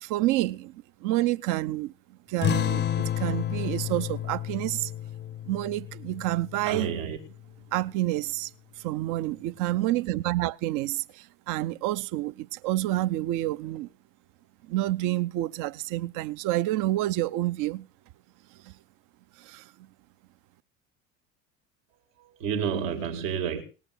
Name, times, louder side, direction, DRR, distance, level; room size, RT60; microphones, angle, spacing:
voice 1, 0.0-1.9 2.3-4.9 5.4-6.9 7.7-8.5 8.8-13.9 14.7-17.9 18.6-18.7 19.4-19.6, right 16 dB, 50° right, 0.7 m, -28 dB
sound 1, 2.4-7.4, left 11 dB, 25° left, 0.6 m, -31 dB
voice 2, 6.6-7.2 22.2-23.6, right 7 dB, 70° right, 2.3 m, -30 dB
18.5 x 8.5 x 6.4 m
hypercardioid pair, 70°, 40 cm